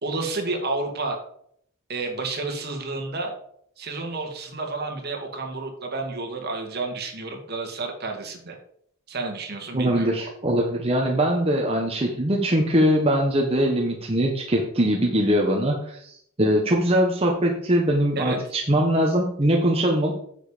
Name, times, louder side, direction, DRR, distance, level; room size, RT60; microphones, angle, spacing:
voice 1, 0.0-1.2 1.9-3.3 3.8-8.6 9.1-10.3 18.2-18.4, right 3 dB, 50° right, 3 dB, 2.2 m, -30 dB
voice 2, 9.7-20.1, equal, 30° right, 0 dB, 1.3 m, -22 dB
10.0 x 7.3 x 5.1 m, 0.67 s
head